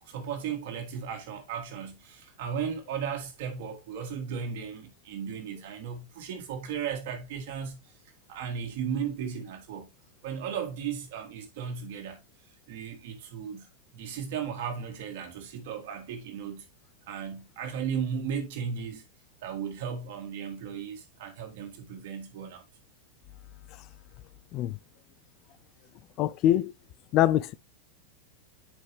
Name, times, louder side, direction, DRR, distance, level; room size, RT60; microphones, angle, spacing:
voice 1, 0.0-7.8 8.3-9.9 10.2-12.2 12.7-16.6 17.1-19.0 19.4-22.6, right 7 dB, 50° right, 2.0 m, -35 dB
voice 2, 26.2-26.7 27.1-27.5, left 13 dB, 40° left, 0.5 m, -24 dB
8.7 x 5.5 x 3.1 m
figure-of-eight pair, 90°, 0 cm